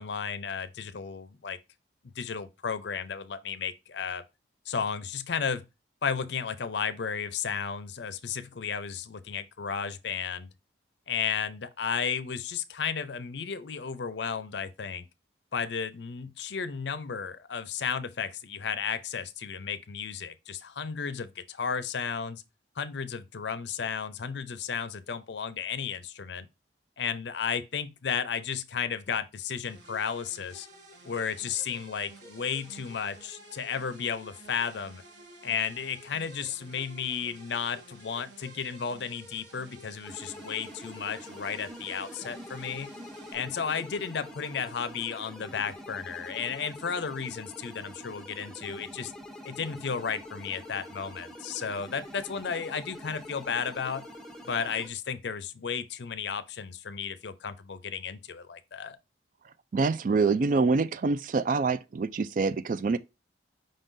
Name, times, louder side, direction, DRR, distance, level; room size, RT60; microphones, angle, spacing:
voice 1, 0.0-1.6 2.2-4.2 4.7-5.6 6.0-10.5 11.1-15.1 15.5-22.4 22.8-26.5 27.0-30.7 31.1-35.0 35.4-42.9 43.3-49.1 49.4-54.0 54.5-59.0, left 6 dB, 70° left, 0.5 m, -33 dB
sound 1, 29.6-43.3, right 1 dB, 65° right, 1.2 m, -51 dB
sound 2, 40.0-54.9, left 1 dB, 5° left, 0.6 m, -45 dB
voice 2, 59.7-63.0, right 4 dB, 45° right, 0.3 m, -26 dB
5.2 x 3.7 x 2.6 m
head